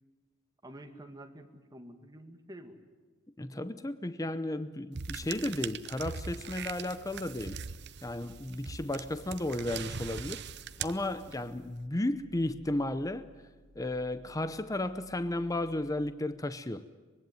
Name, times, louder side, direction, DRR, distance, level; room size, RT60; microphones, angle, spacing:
voice 1, 0.6-2.8, right 1 dB, 20° right, 2.0 m, -48 dB
voice 2, 3.4-7.6 8.0-10.4 10.8-13.3 13.7-16.8, left 1 dB, 15° left, 0.7 m, -34 dB
sound 1, 4.9-11.6, right 6 dB, 55° right, 0.8 m, -41 dB
sound 2, 7.0-16.1, left 2 dB, 75° left, 2.7 m, -59 dB
24.5 x 21.5 x 9.3 m
head